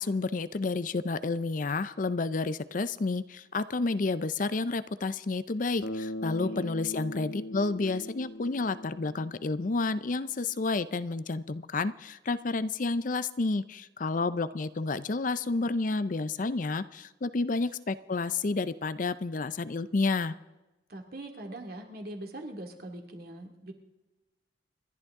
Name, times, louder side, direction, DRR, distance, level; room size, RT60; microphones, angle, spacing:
voice 1, 0.0-20.3, left 3 dB, 45° left, 14 dB, 0.5 m, -30 dB
Bass guitar, 5.8-10.0, left 1 dB, 85° left, 1.0 m, -40 dB
voice 2, 6.2-6.7 20.9-23.7, right 1 dB, 50° right, 3 dB, 2.3 m, -42 dB
28.5 x 11.5 x 3.6 m, 1.1 s
head